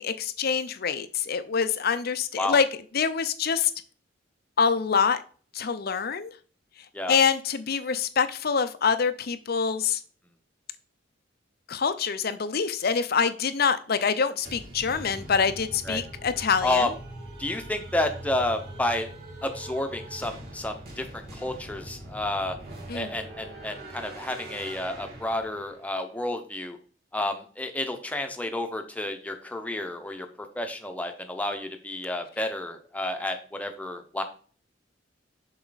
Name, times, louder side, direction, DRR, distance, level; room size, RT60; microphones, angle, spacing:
voice 1, 0.0-2.6 2.9-3.7 4.6-5.2 5.5-6.3 7.1-10.0 11.7-16.8 22.9-23.1, left 6 dB, 55° left, 12 dB, 0.6 m, -25 dB
sound 1, 14.4-25.8, right 1 dB, 55° right, 2.5 m, -42 dB
voice 2, 17.4-19.1 19.4-22.6 22.9-26.8 27.1-34.2, left 1 dB, 10° left, 5 dB, 1.0 m, -30 dB
7.1 x 5.7 x 4.1 m, 0.42 s
head